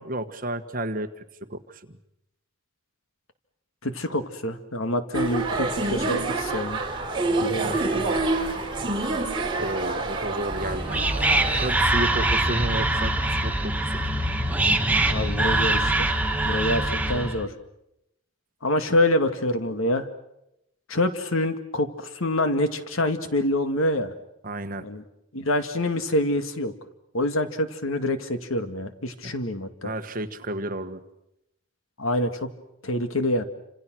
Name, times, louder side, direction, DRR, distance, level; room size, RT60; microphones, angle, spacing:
voice 1, 0.0-2.0 7.3-7.8 9.6-11.0 11.5-14.2 24.4-24.8 29.2-29.3 29.8-31.0, right 1 dB, 45° right, 8 dB, 1.6 m, -32 dB
voice 2, 3.8-6.8 7.4-7.8 15.1-16.1 16.4-17.5 18.6-20.1 20.9-24.1 24.8-25.0 25.3-26.7 27.1-29.9 32.0-32.5 32.8-33.4, left 1 dB, 90° left, 9 dB, 2.1 m, -26 dB
sound 1, 5.1-11.7, right 2 dB, 25° right, 3.7 m, -27 dB
Whispering, 10.5-17.4, right 1 dB, 5° right, 1.5 m, -23 dB
29.0 x 26.5 x 6.3 m, 0.82 s
head